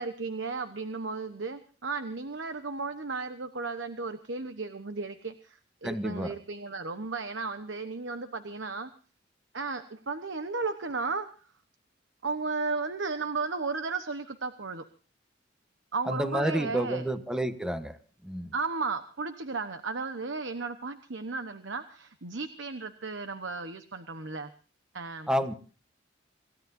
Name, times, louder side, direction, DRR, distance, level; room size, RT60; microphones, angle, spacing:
voice 1, 0.0-8.9 9.5-11.3 12.2-14.8 15.9-17.1 18.5-24.5 24.9-25.3, right 4 dB, 70° right, 9 dB, 1.1 m, -34 dB
voice 2, 5.8-6.3 16.0-18.0 18.2-18.5 25.3-25.5, equal, 5° right, 9 dB, 1.1 m, -30 dB
27.0 x 16.0 x 2.7 m, 0.38 s
head